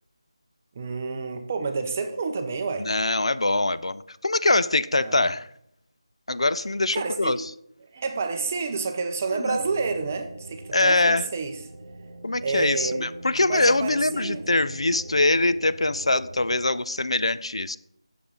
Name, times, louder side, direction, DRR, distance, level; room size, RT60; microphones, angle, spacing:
voice 1, 0.7-2.9 4.9-5.3 6.9-7.4 7.9-11.6 12.4-13.1 13.5-14.5, right 4 dB, 25° right, 7 dB, 0.5 m, -29 dB
voice 2, 2.8-5.5 6.3-7.4 9.3-9.6 10.7-11.2 12.2-17.8, left 2 dB, 75° left, 15 dB, 0.4 m, -23 dB
sound 1, 9.4-16.6, right 2 dB, 60° right, 0.9 m, -42 dB
6.9 x 6.8 x 3.8 m, 0.75 s
figure-of-eight pair, 165°, 3 cm